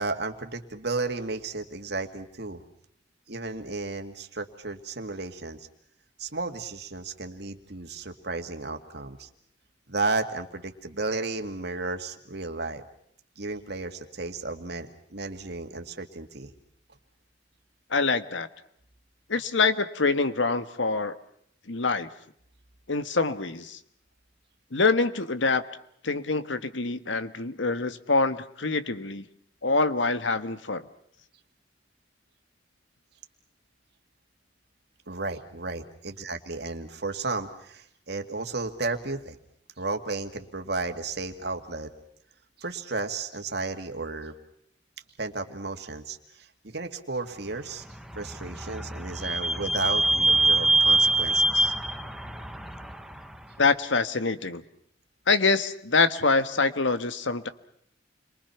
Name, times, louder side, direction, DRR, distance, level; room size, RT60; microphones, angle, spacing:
voice 1, 0.0-2.6 3.3-5.7 6.2-9.3 9.9-12.8 13.4-16.5 35.1-39.4 39.8-41.9 42.6-44.3 45.2-47.8 48.1-51.7, right 3 dB, 60° right, 5 dB, 2.3 m, -33 dB
voice 2, 17.9-18.5 19.3-21.2 21.7-22.1 22.9-23.8 24.7-25.6 26.0-29.2 29.6-30.9 53.6-54.6 55.3-57.5, left 4 dB, 85° left, 11 dB, 1.5 m, -25 dB
Vehicle / Squeak, 47.8-53.4, right 2 dB, ahead, 1.0 m, -25 dB
30.0 x 23.5 x 5.9 m, 0.68 s
head